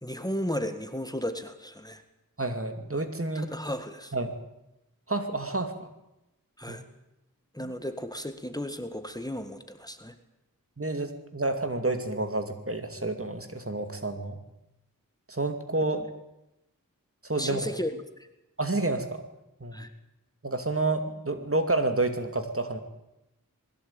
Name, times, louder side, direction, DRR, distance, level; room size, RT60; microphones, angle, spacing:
voice 1, 0.0-2.0 3.4-4.1 6.6-6.8 7.5-10.1 17.4-17.9 18.2-18.3 19.7-19.9, equal, 10° left, 8 dB, 1.7 m, -34 dB
voice 2, 2.4-3.5 4.1-4.3 5.1-5.9 6.7-6.8 7.6-7.7 10.8-14.4 15.3-16.0 17.2-17.7 18.6-19.2 19.6-19.8 20.4-22.8, right 2 dB, 40° right, 7 dB, 2.5 m, -29 dB
21.0 x 16.0 x 8.9 m, 0.91 s
wide cardioid pair, 50°, 34 cm